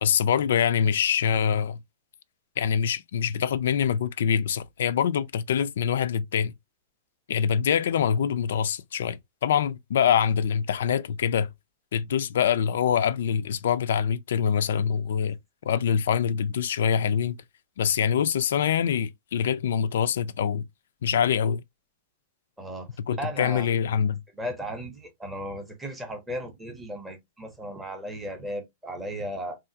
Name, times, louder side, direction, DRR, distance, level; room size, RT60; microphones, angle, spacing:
voice 1, 0.0-1.8 2.6-6.5 7.3-11.5 11.9-15.4 15.7-17.4 17.8-20.7 21.0-21.6 23.1-24.2, left 8 dB, 75° left, 0.3 m, -24 dB
voice 2, 22.6-23.7 24.3-29.6, equal, 5° right, 0.6 m, -35 dB
3.1 x 2.4 x 2.6 m
supercardioid pair, 175°, 0 cm